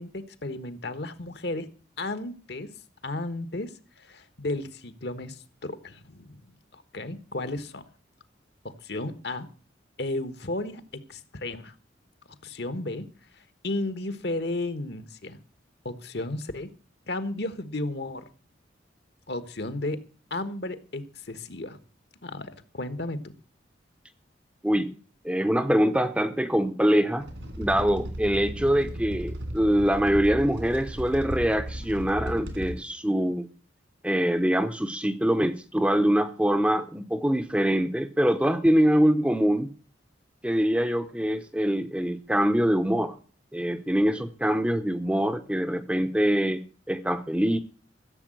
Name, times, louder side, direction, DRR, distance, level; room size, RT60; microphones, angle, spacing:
voice 1, 0.0-1.7 2.0-2.7 3.0-6.4 6.7-7.8 8.6-9.5 10.0-11.7 12.4-13.1 13.6-15.4 15.8-16.7 17.1-18.2 19.3-20.0 20.3-21.8 22.2-23.3, left 2 dB, 60° left, 1.4 m, -33 dB
voice 2, 24.6-24.9 25.2-27.3 27.6-33.5 34.0-39.7 40.4-43.1 43.5-47.6, equal, 5° right, 0.8 m, -24 dB
sound 1, 27.2-32.8, equal, 75° right, 3.2 m, -35 dB
15.0 x 7.4 x 7.6 m
head